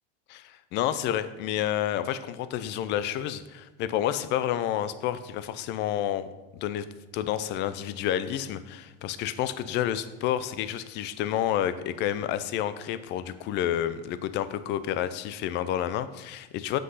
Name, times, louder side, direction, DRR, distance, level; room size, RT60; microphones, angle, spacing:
voice 1, 0.3-6.3 6.5-16.8, left 11 dB, 35° left, 14 dB, 0.5 m, -29 dB
7.7 x 6.3 x 5.6 m, 1.1 s
supercardioid pair, 150°, 31 cm